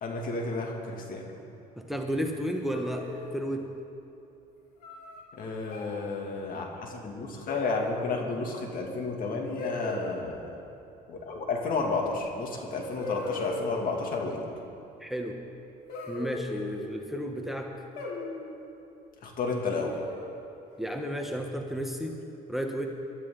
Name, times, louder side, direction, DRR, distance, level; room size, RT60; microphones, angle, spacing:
voice 1, 0.0-1.3 5.3-10.5 11.1-14.5 19.2-20.0, left 3 dB, 55° left, 1 dB, 2.5 m, -32 dB
voice 2, 1.8-3.7 15.0-15.4 16.1-17.8 20.8-22.2 22.5-22.9, equal, ahead, 2 dB, 1.1 m, -32 dB
sound 1, 2.7-3.6 4.8-5.2 5.7-6.0 7.5-8.1 9.6-10.2 12.1-12.2 13.0-14.0 15.9-17.0 18.0-18.6 19.8-20.4, left 2 dB, 85° left, 2.7 m, -38 dB
22.5 x 12.5 x 3.9 m, 2.9 s
cardioid pair, 110°, 17 cm